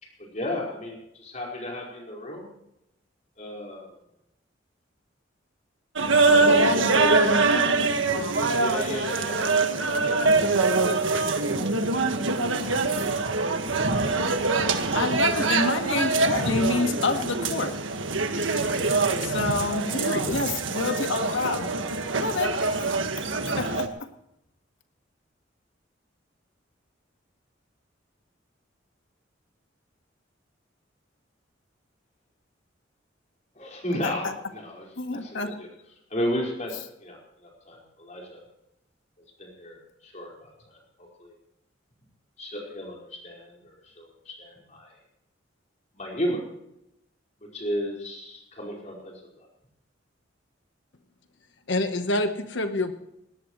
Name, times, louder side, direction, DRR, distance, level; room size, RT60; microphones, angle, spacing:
voice 1, 0.0-2.5 3.4-3.9 6.6-6.9 8.5-11.0 11.3-11.4 33.5-35.7 36.1-38.4 39.4-41.4 42.4-45.0 45.9-46.4 47.4-49.5, equal, 40° left, -1 dB, 4.9 m, -34 dB
sound 1, 6.0-23.9, right 3 dB, 90° right, 1.7 m, -24 dB
voice 2, 6.4-7.8 19.9-20.4 51.7-52.9, left 2 dB, 65° left, 8 dB, 1.2 m, -28 dB
voice 3, 14.9-17.8 19.2-19.8 20.3-21.8 22.2-22.6 23.4-23.9 34.0-34.1 35.0-35.6, left 3 dB, 85° left, 6 dB, 1.7 m, -28 dB
19.5 x 18.0 x 3.2 m, 0.82 s
head